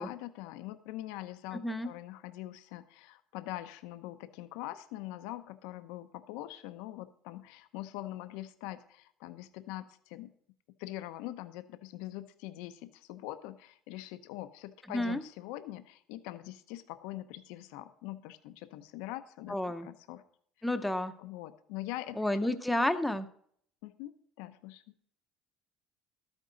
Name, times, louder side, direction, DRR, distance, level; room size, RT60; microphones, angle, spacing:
voice 1, 0.0-10.3 10.8-20.2 21.2-22.2 23.8-24.8, left 15 dB, 90° left, 10 dB, 0.8 m, -43 dB
voice 2, 19.5-19.9 20.6-21.1 22.2-23.3, left 1 dB, 5° left, 9 dB, 0.7 m, -30 dB
13.0 x 9.0 x 3.9 m, 0.62 s
cardioid pair, 165°, 0 cm